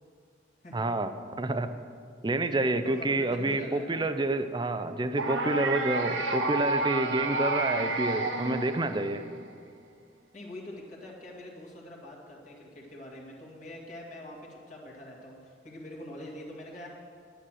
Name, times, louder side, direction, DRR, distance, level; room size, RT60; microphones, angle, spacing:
voice 1, 0.7-1.1 1.4-1.7 2.2-9.2, right 2 dB, 25° right, 10 dB, 0.5 m, -28 dB
voice 2, 2.8-4.0 10.3-16.9, left 1 dB, 40° left, -3 dB, 1.9 m, -44 dB
sound 1, 5.2-9.3, right 2 dB, 70° right, 1.0 m, -30 dB
10.0 x 10.0 x 6.2 m, 2.3 s
head